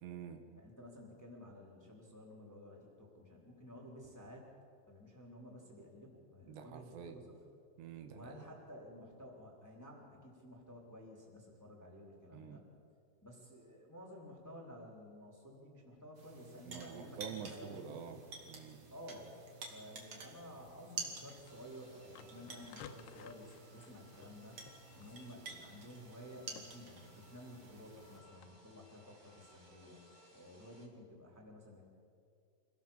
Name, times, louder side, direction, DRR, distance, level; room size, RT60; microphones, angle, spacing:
voice 1, 0.0-0.4 6.5-7.3 7.8-8.4 12.3-12.6 16.7-18.2 18.5-18.8, right 7 dB, 75° right, 6 dB, 3.4 m, -47 dB
voice 2, 0.5-4.5 4.9-7.3 8.1-12.6 13.2-17.2 17.5-18.1 18.9-24.6 24.9-31.9, left 1 dB, 5° left, -2 dB, 3.1 m, -53 dB
sound 1, 16.1-28.2, right 4 dB, 40° right, 3.0 m, -51 dB
sound 2, 20.6-28.5, left 8 dB, 75° left, 2.8 m, -59 dB
sound 3, 21.5-30.9, equal, 15° right, 1.6 m, -64 dB
26.5 x 17.5 x 7.4 m, 2.4 s
omnidirectional pair, 5.2 m